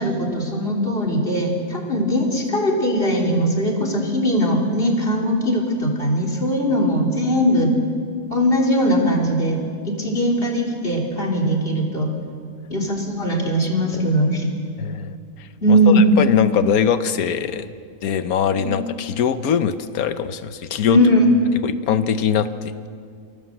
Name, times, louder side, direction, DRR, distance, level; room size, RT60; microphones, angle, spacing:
voice 1, 0.0-7.8 8.3-9.6 10.0-12.1 12.7-14.5 15.6-16.0 18.5-18.7 20.9-21.3, equal, 40° left, -1 dB, 3.7 m, -20 dB
voice 2, 14.8-15.1 15.4-17.7 18.0-21.0 21.6-22.9, left 8 dB, 90° left, 11 dB, 1.3 m, -22 dB
26.5 x 17.5 x 7.8 m, 2.2 s
omnidirectional pair, 1.5 m